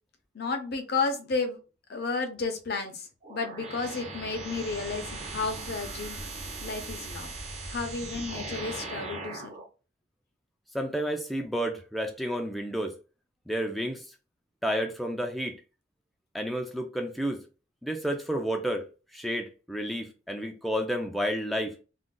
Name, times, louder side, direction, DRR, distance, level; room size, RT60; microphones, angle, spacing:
voice 1, 0.3-1.6 1.9-6.2 6.6-7.3 7.7-9.6, left 4 dB, 60° left, 0.6 m, -32 dB
sound 1, 3.2-9.7, right 2 dB, 40° right, 0.7 m, -39 dB
voice 2, 10.7-12.9 13.5-14.0 14.6-15.6 16.3-17.4 17.8-18.8 19.1-21.7, equal, ahead, 0.3 m, -31 dB
2.5 x 2.1 x 3.7 m
head